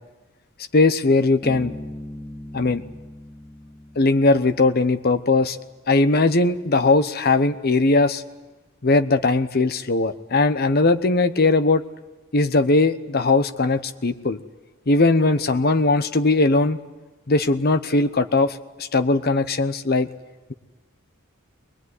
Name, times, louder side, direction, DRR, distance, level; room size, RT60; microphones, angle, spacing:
voice 1, 0.7-1.7 2.5-2.8 4.0-5.6 5.9-8.2 8.8-11.8 12.3-14.4 14.9-16.8 17.3-20.1, left 3 dB, 45° left, 10 dB, 0.9 m, -19 dB
Bass guitar, 1.4-5.0, left 1 dB, 5° left, 2.1 m, -39 dB
22.0 x 20.0 x 9.7 m, 1.2 s
head